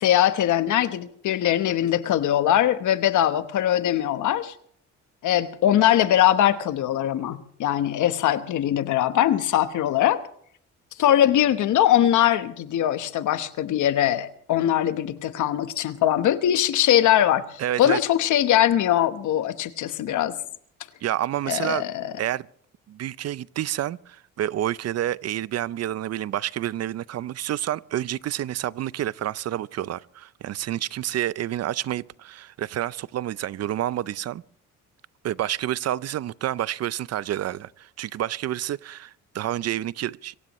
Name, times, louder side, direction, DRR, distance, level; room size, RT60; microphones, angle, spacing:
voice 1, 0.0-4.5 5.2-10.2 11.0-20.4 21.5-22.1, left 11 dB, 75° left, 1.2 m, -21 dB
voice 2, 17.6-18.0 21.0-21.8 22.2-22.5 22.9-34.4 35.2-40.3, right 12 dB, 55° right, 0.5 m, -29 dB
26.0 x 16.0 x 3.1 m
cardioid pair, 90°, 30 cm